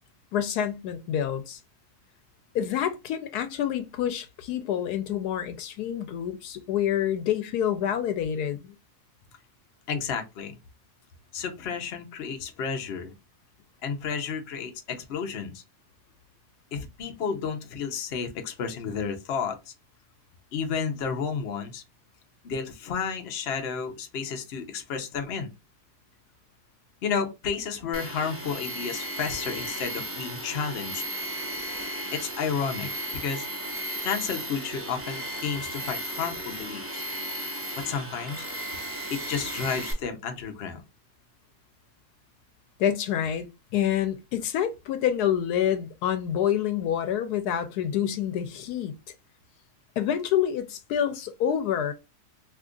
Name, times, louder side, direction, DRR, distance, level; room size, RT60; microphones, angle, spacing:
voice 1, 0.3-1.6 2.5-8.8 42.8-43.5 43.7-48.9 50.0-51.9, left 9 dB, 80° left, 1.1 m, -27 dB
voice 2, 9.9-10.6 11.3-13.1 13.8-15.6 16.7-19.6 20.5-21.8 22.4-25.5 27.0-31.0 32.1-33.5 34.0-37.0 37.9-38.5 39.1-40.8, left 6 dB, 55° left, 0.8 m, -31 dB
Tools, 27.9-39.9, right 1 dB, 15° right, 0.5 m, -35 dB
2.8 x 2.4 x 3.6 m
omnidirectional pair, 1.7 m